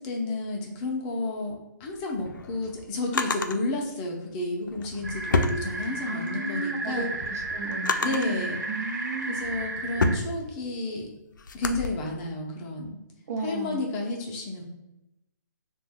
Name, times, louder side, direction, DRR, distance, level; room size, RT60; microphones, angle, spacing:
voice 1, 0.0-7.1 8.0-8.6 9.3-11.1 11.5-13.0 13.4-14.6, left 2 dB, 25° left, 0 dB, 0.5 m, -31 dB
Drawer open or close, 1.9-3.6 4.6-6.3 6.7-8.4 9.0-11.9, left 3 dB, 80° left, 0.4 m, -30 dB
sound 1, 5.0-10.2, right 2 dB, 85° right, 1.0 m, -34 dB
voice 2, 6.1-9.4 13.3-13.8, right 3 dB, 50° right, 3 dB, 0.6 m, -34 dB
2.5 x 2.2 x 3.5 m, 0.91 s
hypercardioid pair, 145°, 10 cm